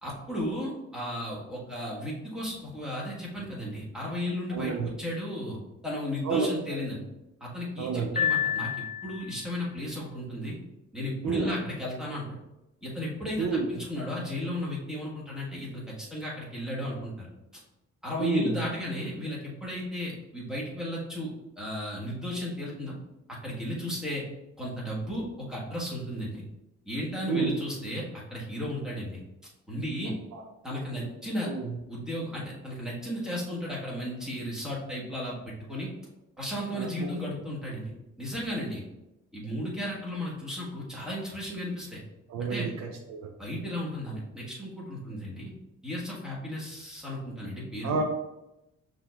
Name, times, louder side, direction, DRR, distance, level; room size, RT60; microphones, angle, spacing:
voice 1, 0.0-7.0 7.4-10.6 10.9-12.4 12.8-17.3 18.0-22.9 23.4-24.2 24.6-26.4 26.8-28.0 28.3-29.2 29.7-30.1 30.6-31.5 31.9-35.9 36.4-37.9 38.2-38.8 39.3-42.0 42.4-42.7 43.4-45.5 45.8-48.0, left 1 dB, ahead, -5 dB, 1.6 m, -34 dB
voice 2, 4.5-4.9 6.2-6.8 7.8-8.2 11.2-11.6 13.4-13.7 18.2-18.6 27.3-27.5 30.0-30.4 31.4-31.7 36.7-37.1 42.3-43.3 47.8-48.0, right 4 dB, 65° right, 4 dB, 0.6 m, -30 dB
Piano, 8.2-9.4, left 8 dB, 25° left, 0.7 m, -29 dB
5.6 x 3.3 x 2.5 m, 0.94 s
cardioid pair, 90°, 30 cm